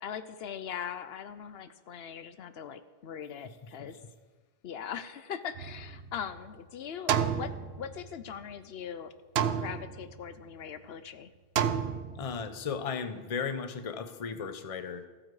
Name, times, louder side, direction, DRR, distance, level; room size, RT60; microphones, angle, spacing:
voice 1, 0.0-4.0 4.6-7.5 7.8-9.1 9.6-11.3, left 8 dB, 75° left, 12 dB, 0.9 m, -40 dB
voice 2, 3.4-3.9 12.1-15.0, left 6 dB, 40° left, 10 dB, 0.7 m, -36 dB
sound 1, 5.6-6.5 7.1-8.3 9.4-10.3 11.6-12.5, right 8 dB, 80° right, 0.9 m, -31 dB
14.5 x 8.8 x 4.8 m, 1.3 s
omnidirectional pair, 1.0 m